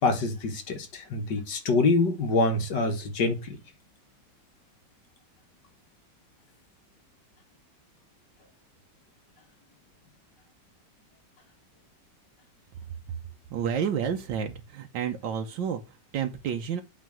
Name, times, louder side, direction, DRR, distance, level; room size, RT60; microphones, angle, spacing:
voice 1, 0.0-3.6, left 3 dB, 70° left, 2.1 m, -25 dB
voice 2, 13.5-16.8, right 7 dB, 85° right, 1.5 m, -30 dB
8.4 x 3.8 x 6.1 m
omnidirectional pair, 2.0 m